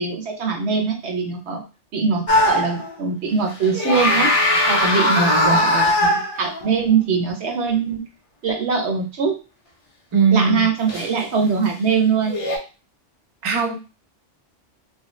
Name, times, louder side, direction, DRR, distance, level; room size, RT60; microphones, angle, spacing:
voice 1, 0.0-1.6 1.9-4.3 4.7-8.0 8.4-9.4 10.3-12.4, right 5 dB, 65° right, 2 dB, 0.9 m, -22 dB
sound 1, 2.3-2.9 3.6-6.7 10.9-11.1 12.3-12.6, left 1 dB, 50° left, 0.4 m, -19 dB
voice 2, 5.1-5.6 10.1-10.7 13.4-13.7, right 4 dB, 45° right, 3 dB, 0.4 m, -19 dB
3.2 x 2.0 x 3.0 m, 0.32 s
omnidirectional pair, 1.2 m